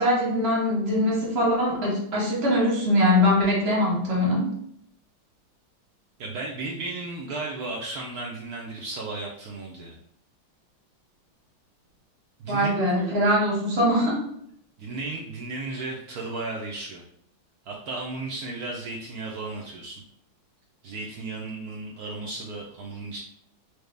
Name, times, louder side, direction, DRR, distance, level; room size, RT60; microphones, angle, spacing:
voice 1, 0.0-4.5 12.5-14.2, left 1 dB, 45° right, -2 dB, 0.8 m, -22 dB
voice 2, 6.2-9.9 12.4-13.2 14.8-17.0 17.6-20.0 20.8-23.2, right 3 dB, 85° right, -2 dB, 0.8 m, -34 dB
4.7 x 2.1 x 3.3 m, 0.70 s
omnidirectional pair, 2.2 m